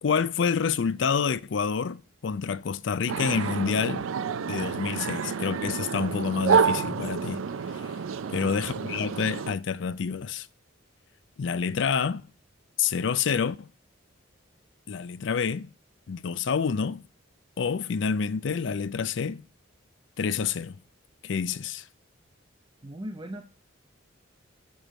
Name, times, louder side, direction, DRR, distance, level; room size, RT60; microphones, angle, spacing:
voice 1, 0.0-4.1 4.5-7.4 8.3-10.5 11.4-12.2 12.8-13.7 14.9-15.7 16.1-17.0 17.6-19.4 20.2-20.8 21.2-21.8, left 6 dB, 65° left, 0.4 m, -28 dB
sound 1, 3.1-9.5, right 6 dB, 80° right, 0.4 m, -29 dB
voice 2, 8.2-8.6 22.8-23.4, equal, 25° right, 0.6 m, -39 dB
7.0 x 4.5 x 6.3 m
head